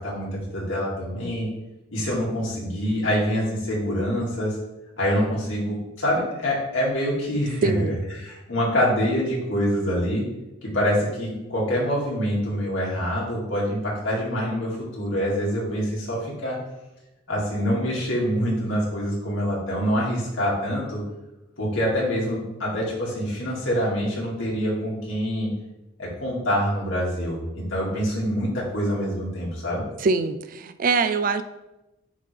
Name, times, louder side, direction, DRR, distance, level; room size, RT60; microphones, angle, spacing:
voice 1, 0.0-1.5 1.9-4.6 5.0-10.2 10.6-16.6 17.3-21.0 21.6-25.5 26.0-29.8, equal, 80° left, -5 dB, 2.3 m, -25 dB
voice 2, 7.6-8.0 30.0-31.4, right 4 dB, 45° right, 10 dB, 0.4 m, -23 dB
9.7 x 3.7 x 3.3 m, 0.98 s
head